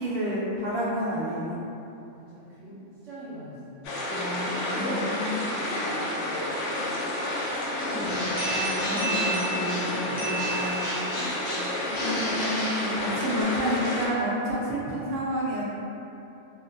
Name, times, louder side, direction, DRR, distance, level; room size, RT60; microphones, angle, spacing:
voice 1, 0.0-1.6 4.1-5.4 7.9-11.1 12.0-15.7, equal, 55° right, -7 dB, 0.5 m, -30 dB
voice 2, 2.1-4.0 4.7-7.0 7.8-10.6, equal, 80° right, -12 dB, 1.0 m, -43 dB
sound 1, 3.8-14.1, left 1 dB, 80° left, 0.9 m, -30 dB
Bird, 8.0-10.1 10.4-13.4, equal, 45° left, 0.6 m, -35 dB
sound 2, 8.4-11.3, right 4 dB, ahead, 0.5 m, -33 dB
2.5 x 2.1 x 2.6 m, 2.8 s
omnidirectional pair, 1.3 m